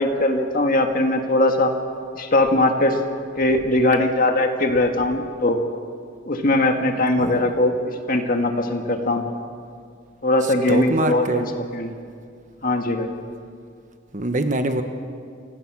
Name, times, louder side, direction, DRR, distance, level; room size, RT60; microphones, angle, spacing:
voice 1, 0.0-1.7 2.2-3.0 3.4-5.6 6.3-7.7 8.1-9.2 10.2-11.9 12.6-13.1, left 1 dB, 45° left, 4 dB, 1.8 m, -20 dB
voice 2, 10.4-11.4 14.1-14.8, right 1 dB, 40° right, 7 dB, 1.3 m, -24 dB
29.0 x 17.5 x 6.3 m, 2.2 s
head